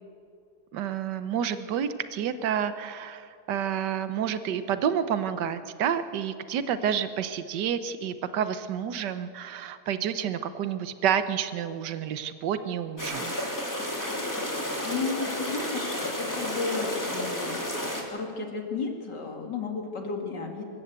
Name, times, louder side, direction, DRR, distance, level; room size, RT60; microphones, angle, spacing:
voice 1, 0.7-13.3, right 8 dB, 80° right, 11 dB, 1.5 m, -29 dB
sound 1, 13.0-18.0, left 1 dB, 10° left, 2.8 m, -31 dB
voice 2, 14.8-20.6, left 4 dB, 80° left, 3 dB, 2.9 m, -34 dB
25.0 x 14.5 x 8.1 m, 2.4 s
omnidirectional pair, 1.8 m